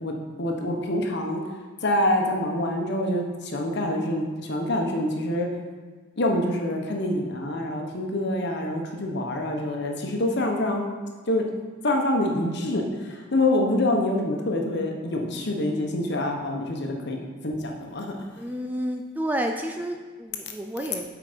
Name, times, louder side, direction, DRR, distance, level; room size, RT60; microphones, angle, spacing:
voice 1, 0.0-1.4 1.8-5.5 6.2-10.8 11.2-11.5 11.8-18.4, left 1 dB, 55° left, 2 dB, 1.1 m, -26 dB
voice 2, 18.4-21.0, equal, 10° right, 4 dB, 0.3 m, -30 dB
8.1 x 4.9 x 5.1 m, 1.4 s
head